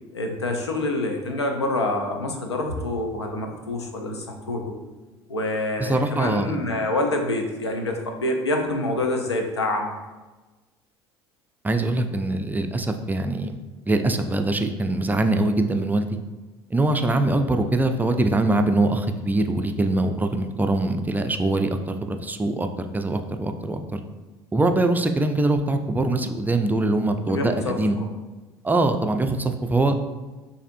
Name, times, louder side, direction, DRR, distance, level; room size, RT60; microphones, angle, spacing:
voice 1, 0.1-4.6 5.3-9.9 27.3-28.1, left 2 dB, 85° left, 4 dB, 0.5 m, -26 dB
voice 2, 5.8-6.6 11.6-13.6 13.9-16.1 16.7-22.7 22.9-24.0 24.5-28.0 28.6-30.0, right 2 dB, 15° right, 6 dB, 0.4 m, -23 dB
6.4 x 2.6 x 2.6 m, 1.2 s
figure-of-eight pair, 65°, 14 cm